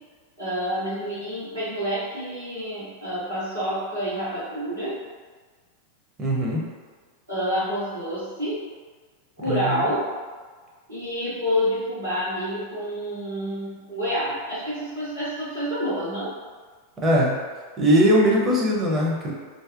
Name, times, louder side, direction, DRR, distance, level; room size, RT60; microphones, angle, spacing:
voice 1, 0.4-5.0 7.3-8.6 9.4-10.0 10.9-16.3, equal, 85° right, -15 dB, 1.3 m, -28 dB
voice 2, 6.2-6.6 9.5-9.8 17.0-17.4 17.8-19.3, equal, 20° right, -4 dB, 0.6 m, -20 dB
2.6 x 2.1 x 2.4 m, 1.5 s
figure-of-eight pair, 90°, 0 cm